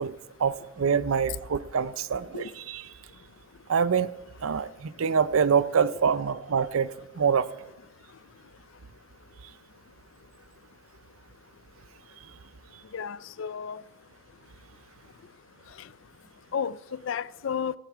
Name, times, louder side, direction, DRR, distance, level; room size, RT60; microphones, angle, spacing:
voice 1, 0.0-2.8 3.7-4.1 4.4-6.9 7.2-7.5, right 6 dB, 90° right, 0.5 m, -25 dB
voice 2, 12.9-13.8 16.5-17.7, left 7 dB, 70° left, 0.4 m, -32 dB
16.0 x 9.2 x 4.7 m
head